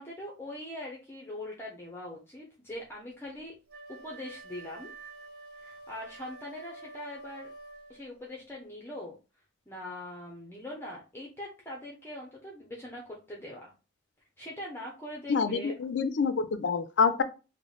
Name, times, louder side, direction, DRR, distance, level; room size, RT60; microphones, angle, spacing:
voice 1, 0.0-3.5 3.9-4.9 5.6-7.5 7.9-9.1 9.7-13.7 14.4-15.7, left 1 dB, 10° left, 0.6 m, -42 dB
Wind instrument woodwind instrument, 3.7-8.1, right 2 dB, 50° right, 0.6 m, -48 dB
voice 2, 15.3-17.2, left 5 dB, 65° left, 0.4 m, -27 dB
3.0 x 2.1 x 3.9 m
head